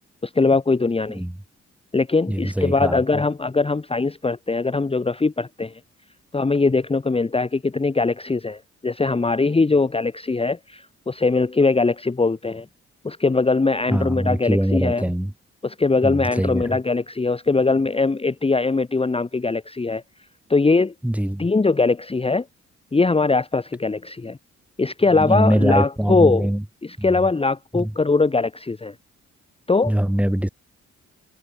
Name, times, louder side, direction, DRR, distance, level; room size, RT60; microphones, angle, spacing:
voice 1, 0.2-1.2 1.9-5.8 6.3-12.7 13.0-15.1 15.6-20.0 20.5-20.9 21.4-22.4 22.9-24.4 24.8-26.5 26.8-28.9 29.7-29.9, left 3 dB, 20° left, 1.1 m, -21 dB
voice 2, 2.3-3.0 13.9-15.3 16.0-16.8 21.0-21.5 25.1-26.6 27.0-27.2 27.7-27.9 29.9-30.5, right 1 dB, 5° right, 1.8 m, -22 dB
cardioid pair, 70°, 29 cm